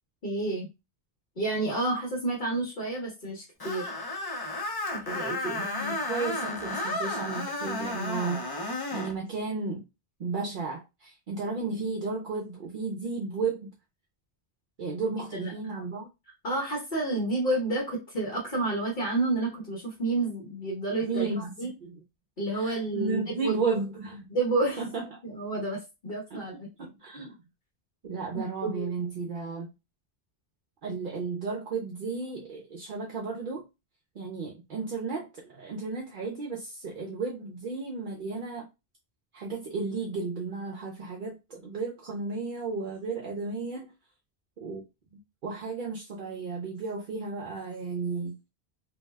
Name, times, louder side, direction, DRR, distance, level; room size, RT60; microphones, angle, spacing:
voice 1, 0.2-0.7 1.4-3.9 4.9-5.6 15.3-15.5 16.4-21.7 22.4-23.6 24.3-24.8 25.2-26.7 28.3-28.9, right 2 dB, 55° left, 1.2 m, -30 dB
Screech, 3.6-9.1, left 2 dB, 30° left, 0.4 m, -33 dB
voice 2, 5.6-8.4 8.9-9.8 10.2-13.7 14.8-16.1 21.0-22.0 22.5-24.3 24.8-25.1 26.3-26.4 26.8-27.4 28.0-29.7 30.8-33.7 34.2-38.7 39.3-43.9 44.6-44.8 45.4-48.4, right 4 dB, 60° right, 0.7 m, -33 dB
2.7 x 2.2 x 3.2 m
omnidirectional pair, 1.0 m